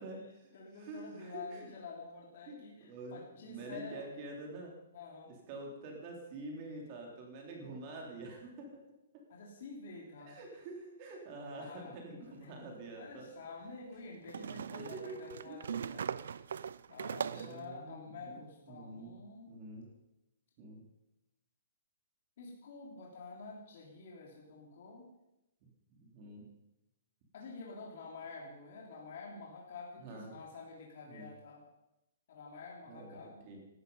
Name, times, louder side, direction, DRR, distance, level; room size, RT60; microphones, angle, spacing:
voice 1, 0.0-1.8 2.5-4.7 5.5-8.8 10.2-13.3 14.7-15.6 17.3-19.2 19.5-19.9 20.6-20.8 25.6-26.4 30.0-30.3 31.1-31.3 32.9-33.6, right 2 dB, 25° right, 0 dB, 3.3 m, -47 dB
voice 2, 0.5-4.1 4.9-5.3 9.3-10.4 11.5-11.9 12.4-16.5 16.9-19.6 22.4-25.1 27.3-31.6 32.3-33.5, left 4 dB, 45° left, -2 dB, 3.4 m, -49 dB
sound 1, 12.3-12.4 14.3-17.6, right 7 dB, 70° right, 0.5 m, -40 dB
17.0 x 13.0 x 5.5 m, 0.93 s
hypercardioid pair, 180°, 0 cm